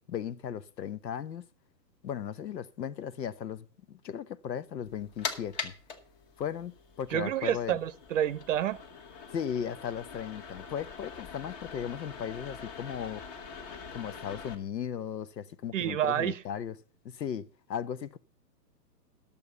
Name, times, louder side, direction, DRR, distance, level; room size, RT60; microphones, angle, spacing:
voice 1, 0.1-1.5 2.0-5.7 6.4-7.8 9.3-13.2 13.9-16.8 17.0-18.2, left 8 dB, 85° left, 0.9 m, -36 dB
sound 1, 4.8-14.5, left 5 dB, 30° left, 1.3 m, -43 dB
voice 2, 7.1-8.8 15.7-16.4, right 11 dB, 50° right, 0.7 m, -29 dB
11.0 x 7.0 x 6.8 m
hypercardioid pair, 135°, 49 cm